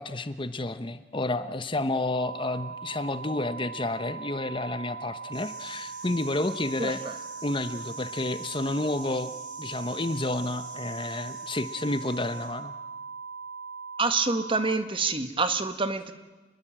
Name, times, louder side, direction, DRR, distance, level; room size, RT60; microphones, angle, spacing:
voice 1, 0.0-7.0 7.4-9.3 9.6-12.7, left 2 dB, 30° left, 11 dB, 1.0 m, -30 dB
sound 1, 2.2-14.7, right 5 dB, 65° right, 1.7 m, -40 dB
sound 2, 5.3-12.5, right 3 dB, 80° right, 7.6 m, -48 dB
voice 2, 6.8-7.1 14.0-16.1, right 3 dB, 30° right, 9 dB, 1.7 m, -27 dB
27.5 x 21.0 x 9.0 m, 1.2 s
head